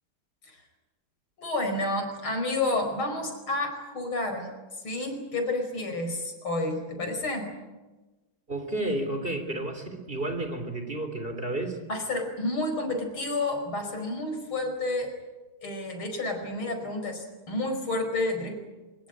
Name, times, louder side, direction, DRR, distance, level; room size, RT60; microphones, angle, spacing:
voice 1, 1.4-4.5 4.8-7.6 11.9-15.1 15.6-18.6, left 2 dB, 85° left, 5 dB, 5.7 m, -30 dB
voice 2, 8.5-11.8, right 2 dB, 25° right, 7 dB, 3.5 m, -31 dB
24.0 x 22.0 x 8.8 m, 1.2 s
omnidirectional pair, 2.3 m